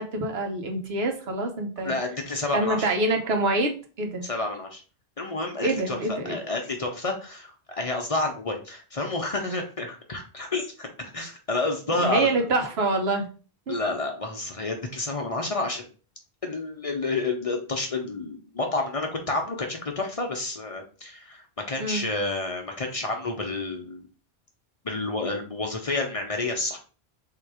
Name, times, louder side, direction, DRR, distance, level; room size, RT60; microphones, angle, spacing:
voice 1, 0.0-2.0 2.5-4.3 5.6-6.4 12.0-13.3 13.7-13.8 21.8-22.0, right 2 dB, 75° right, 3 dB, 1.2 m, -26 dB
voice 2, 1.8-2.9 4.2-4.8 5.2-12.3 13.7-15.9 16.4-24.1 24.8-26.8, left 2 dB, 40° left, 2 dB, 0.7 m, -30 dB
3.7 x 2.8 x 4.8 m, 0.37 s
omnidirectional pair, 1.1 m